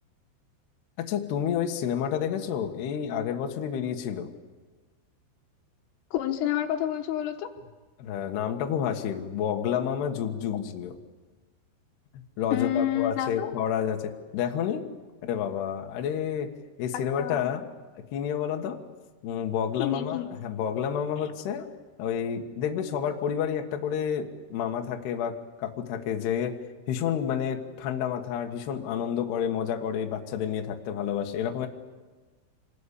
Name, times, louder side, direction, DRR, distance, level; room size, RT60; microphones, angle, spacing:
voice 1, 1.0-4.3 8.0-11.0 12.1-14.8 15.2-16.5 16.8-17.7 17.9-18.8 19.2-21.7 22.0-26.6 26.9-31.7, left 8 dB, 65° left, 3 dB, 3.1 m, -30 dB
voice 2, 6.1-7.5 12.5-13.6 16.9-17.5 19.8-20.4, left 12 dB, 80° left, 6 dB, 3.9 m, -29 dB
27.0 x 20.5 x 8.3 m, 1.3 s
omnidirectional pair, 5.9 m